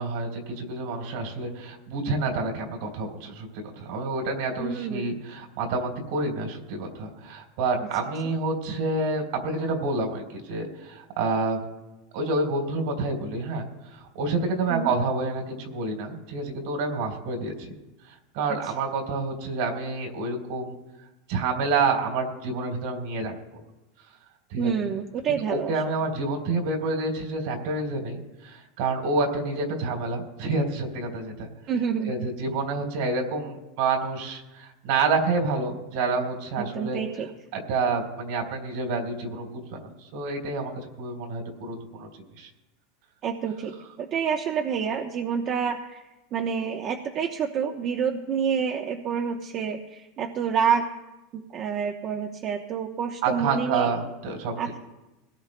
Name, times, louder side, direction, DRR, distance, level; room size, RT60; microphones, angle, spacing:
voice 1, 0.0-3.5 3.8-11.6 12.1-17.7 18.3-20.8 21.3-23.3 24.5-24.7 25.5-31.5 32.0-37.0 37.5-40.7 41.0-42.5 53.2-54.5, right 3 dB, 70° right, 2 dB, 3.9 m, -28 dB
voice 2, 4.6-5.2 14.7-14.9 24.6-25.7 31.7-32.3 36.6-37.3 43.2-46.0 46.3-50.9 51.3-53.9 54.6-54.8, right 7 dB, 40° right, 3 dB, 1.0 m, -28 dB
21.5 x 17.5 x 2.3 m, 1.0 s
supercardioid pair, 120°, 0 cm